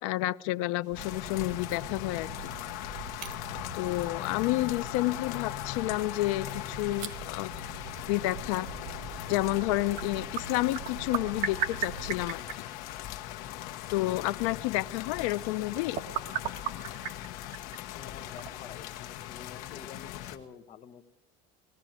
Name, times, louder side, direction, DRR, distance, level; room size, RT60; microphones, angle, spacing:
voice 1, 0.0-2.5 3.7-7.6 8.1-8.7 9.3-12.6 13.9-16.0, left 18 dB, 80° left, 15 dB, 0.7 m, -30 dB
sound 1, 0.8-20.5, right 9 dB, 50° right, 1.5 m, -42 dB
Rain with distant traffic, 0.9-20.4, left 14 dB, 65° left, 1.4 m, -39 dB
sound 2, 0.9-12.4, right 7 dB, 85° right, 2.0 m, -46 dB
voice 2, 17.9-21.0, left 7 dB, 40° left, 7 dB, 1.3 m, -48 dB
20.5 x 15.0 x 9.3 m, 0.98 s
cardioid pair, 150°, 17 cm